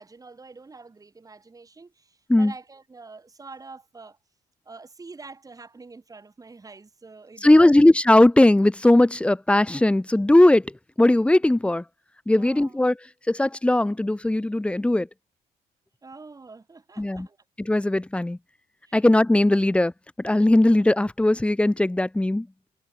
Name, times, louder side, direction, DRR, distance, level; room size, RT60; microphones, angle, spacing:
voice 1, 0.0-4.2 4.7-7.8 12.4-12.8 16.0-17.4 18.8-19.0, right 3 dB, 20° right, 5.1 m, -45 dB
voice 2, 7.4-10.7 11.0-11.8 12.3-13.0 13.3-15.1 17.0-17.3 17.6-18.4 18.9-19.9 20.2-22.5, left 1 dB, 5° left, 0.7 m, -18 dB
cardioid pair, 110°, 17 cm